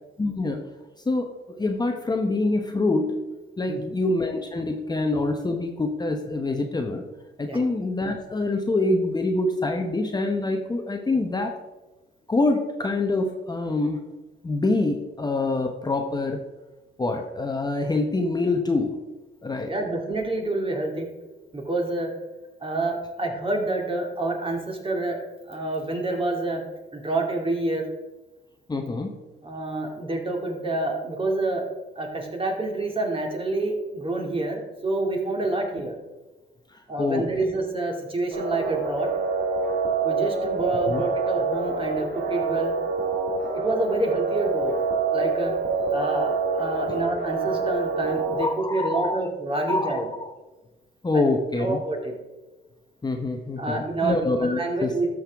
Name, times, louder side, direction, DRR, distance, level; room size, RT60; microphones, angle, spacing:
voice 1, 0.2-0.6 1.1-3.1 3.6-7.0 7.4-11.5 12.3-14.0 14.4-16.4 17.0-19.0 19.4-19.7 28.7-29.1 36.7-37.2 40.9-41.0 48.4-49.3 49.7-50.3 51.0-51.8 53.0-55.0, left 2 dB, 20° left, 4 dB, 0.9 m, -25 dB
voice 2, 19.7-21.1 21.5-22.1 22.6-25.2 25.5-26.6 26.9-27.8 29.4-31.7 32.0-36.0 36.9-39.1 40.0-42.7 43.6-44.8 45.1-45.5 45.9-50.1 51.1-51.2 51.6-52.1 53.6-55.1, right 2 dB, 25° right, 1 dB, 2.3 m, -28 dB
sound 1, 38.3-48.4, right 4 dB, 70° right, 1.8 m, -26 dB
13.0 x 6.4 x 3.5 m, 1.1 s
cardioid pair, 90°, 20 cm